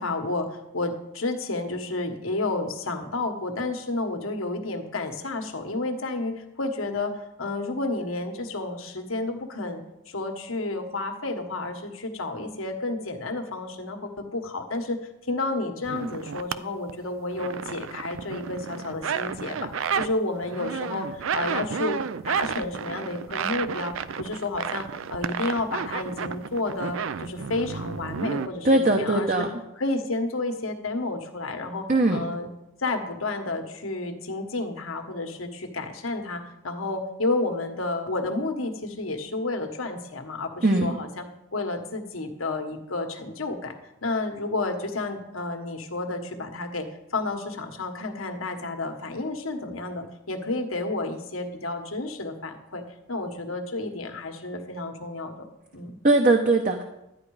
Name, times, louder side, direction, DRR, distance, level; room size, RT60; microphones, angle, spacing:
voice 1, 0.0-7.1 7.4-9.8 10.1-15.0 15.3-29.5 29.8-31.9 32.1-32.5 32.8-41.2 41.5-43.7 44.0-52.8 53.1-55.5 55.7-56.0, left 2 dB, 85° left, 5 dB, 1.5 m, -31 dB
sound 1, 15.8-16.6 16.9-20.1 20.4-28.5, right 6 dB, 75° right, 0.4 m, -31 dB
voice 2, 28.6-29.5 31.9-32.2 40.6-40.9 56.0-56.8, right 2 dB, 40° right, 4 dB, 0.8 m, -20 dB
12.0 x 9.8 x 4.9 m, 0.89 s
head